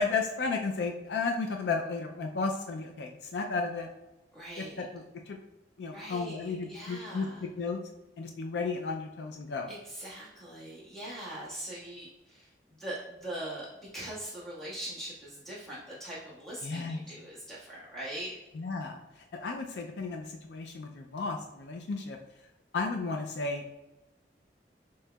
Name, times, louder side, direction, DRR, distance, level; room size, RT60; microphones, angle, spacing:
voice 1, 0.0-3.9 4.6-5.4 5.8-7.3 7.6-7.8 8.2-9.7 16.6-17.0 18.5-22.2 22.7-23.7, left 4 dB, 70° left, 3 dB, 0.4 m, -33 dB
voice 2, 4.3-4.8 5.9-7.4 9.7-18.4, right 1 dB, ahead, -9 dB, 1.5 m, -42 dB
6.1 x 2.8 x 2.3 m, 1.0 s
head